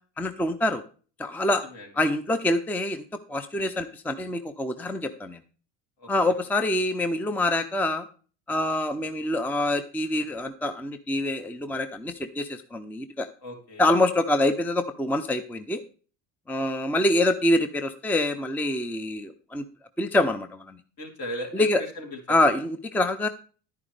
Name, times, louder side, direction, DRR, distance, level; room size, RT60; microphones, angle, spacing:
voice 1, 0.2-0.8 1.2-1.6 1.9-3.0 3.3-5.4 6.1-8.1 8.5-13.3 13.8-15.8 16.5-19.6 20.0-20.8 21.5-21.8 22.3-23.3, left 1 dB, 5° left, 9 dB, 0.6 m, -25 dB
voice 2, 13.4-13.9 21.0-22.5, equal, 55° left, 1 dB, 3.7 m, -37 dB
10.5 x 9.6 x 3.4 m, 0.39 s
hypercardioid pair, 80°, 44 cm